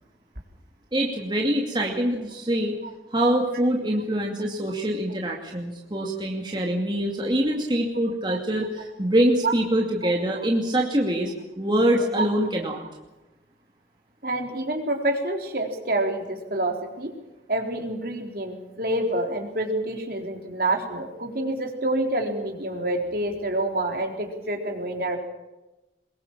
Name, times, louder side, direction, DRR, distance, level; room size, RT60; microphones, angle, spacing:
voice 1, 0.9-2.8 3.1-12.8, right 1 dB, 25° right, 0 dB, 2.5 m, -24 dB
voice 2, 14.2-17.1 17.5-25.2, right 1 dB, 55° right, 3 dB, 4.0 m, -27 dB
23.5 x 22.0 x 7.5 m, 1.0 s
head